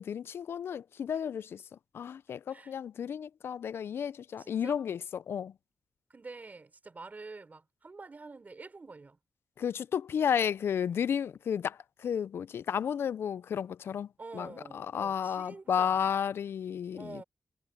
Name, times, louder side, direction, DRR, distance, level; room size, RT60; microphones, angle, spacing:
voice 1, 0.0-1.6 1.9-5.5 9.6-14.1 14.3-17.2, left 8 dB, 85° left, 0.4 m, -32 dB
voice 2, 4.4-4.8 6.1-9.2 14.2-16.0 16.9-17.2, right 3 dB, 45° right, 4.4 m, -47 dB
cardioid pair, 55°, 4 cm